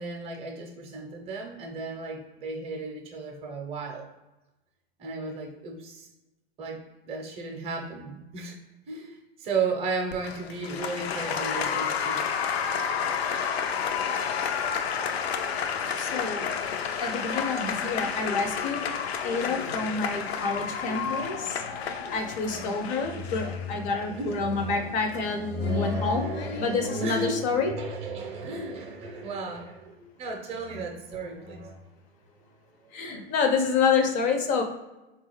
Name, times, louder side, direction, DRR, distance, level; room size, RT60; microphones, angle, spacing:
voice 1, 0.0-4.1 5.0-6.1 6.6-8.6 8.9-12.3 21.1-22.1 22.4-22.8 23.0-31.8 32.8-33.1, right 2 dB, 20° right, 2 dB, 0.6 m, -34 dB
Applause, 10.1-27.2, left 7 dB, 80° left, 0.5 m, -31 dB
voice 2, 16.0-16.5 17.0-18.8 19.2-21.6 22.1-26.3 26.6-27.7 30.7-30.8 32.9-34.6, left 4 dB, 25° left, 5 dB, 0.4 m, -28 dB
3.7 x 2.4 x 3.1 m, 1.0 s
hypercardioid pair, 115°, 30 cm